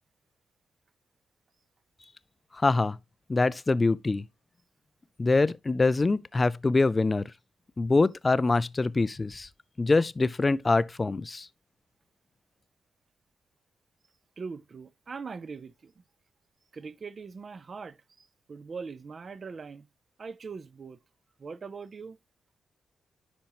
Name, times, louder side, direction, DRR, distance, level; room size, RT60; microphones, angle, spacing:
voice 1, 2.5-3.0 3.3-4.2 5.2-7.2 7.8-9.5 9.8-11.5, left 3 dB, 25° left, 0.4 m, -24 dB
voice 2, 14.4-16.0 16.7-19.9 20.2-21.0 21.4-22.2, right 5 dB, 40° right, 0.6 m, -41 dB
10.0 x 5.3 x 3.0 m
cardioid pair, 120°, 0 cm